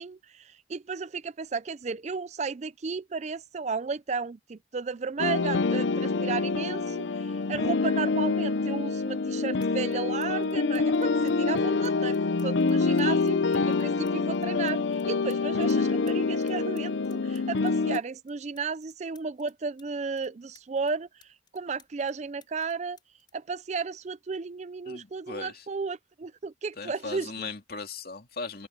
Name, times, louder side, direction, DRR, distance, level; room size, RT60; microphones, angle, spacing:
voice 1, 0.0-23.0 23.3-27.5, right 5 dB, 35° right, 0.4 m, -34 dB
sound 1, 5.2-18.0, left 4 dB, 70° left, 0.6 m, -26 dB
sound 2, 9.6-10.0 10.2-15.8 16.1-19.9 20.2-22.1 22.4-24.2 25.2-25.4, left 7 dB, 25° left, 5.4 m, -60 dB
voice 2, 12.9-13.2 24.9-25.6 26.8-28.7, left 4 dB, 50° left, 2.5 m, -38 dB
head